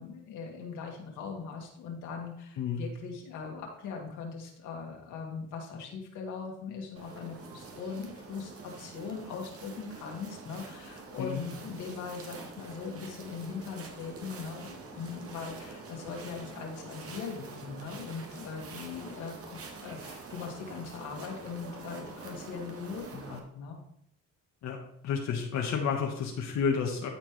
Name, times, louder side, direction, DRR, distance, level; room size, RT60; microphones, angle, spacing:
voice 1, 0.0-23.8, left 5 dB, 80° left, 0 dB, 2.2 m, -40 dB
sound 1, 7.0-23.4, right 3 dB, 50° right, 1.5 m, -46 dB
voice 2, 25.0-27.1, left 6 dB, 65° left, 1 dB, 1.3 m, -30 dB
13.0 x 4.5 x 3.3 m, 0.72 s
cardioid pair, 95°, 30 cm